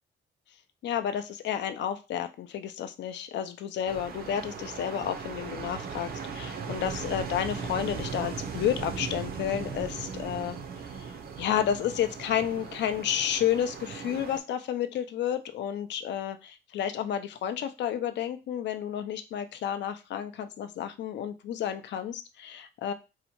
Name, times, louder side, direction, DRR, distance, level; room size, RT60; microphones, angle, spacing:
voice 1, 0.8-10.6 11.0-22.9, left 9 dB, 65° left, 10 dB, 0.4 m, -31 dB
sound 1, 3.9-14.4, right 6 dB, 50° right, 0.5 m, -38 dB
2.8 x 2.1 x 2.9 m, 0.28 s
cardioid pair, 90°, 20 cm